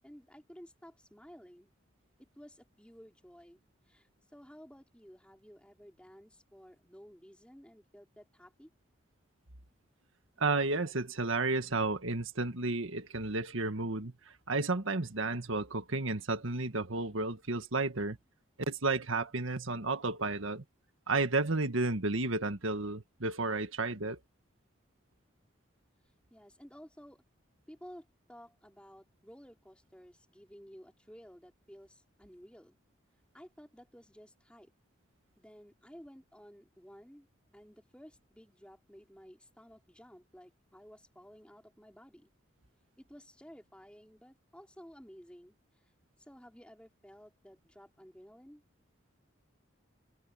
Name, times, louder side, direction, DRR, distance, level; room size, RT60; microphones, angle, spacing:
voice 1, 0.0-1.7 2.2-3.6 3.9-8.7 26.3-27.2 27.7-32.8 33.3-34.7 35.4-37.3 37.5-42.3 43.0-45.9 46.2-48.6, equal, 5° left, 4.2 m, -54 dB
voice 2, 10.4-14.1 14.5-18.2 18.7-20.6 21.1-24.2, right 3 dB, 85° right, 1.8 m, -32 dB
head